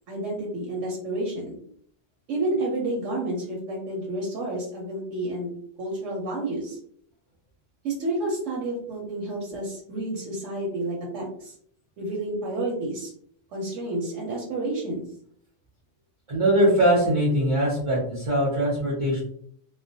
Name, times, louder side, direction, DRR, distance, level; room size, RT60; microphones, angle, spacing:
voice 1, 0.1-1.5 2.3-5.5 5.8-6.8 7.8-11.5 12.0-13.1 13.5-15.0, right 2 dB, 80° right, -2 dB, 1.0 m, -30 dB
voice 2, 16.3-19.2, right 1 dB, 40° right, -5 dB, 0.5 m, -21 dB
2.3 x 2.1 x 2.6 m, 0.64 s
omnidirectional pair, 1.3 m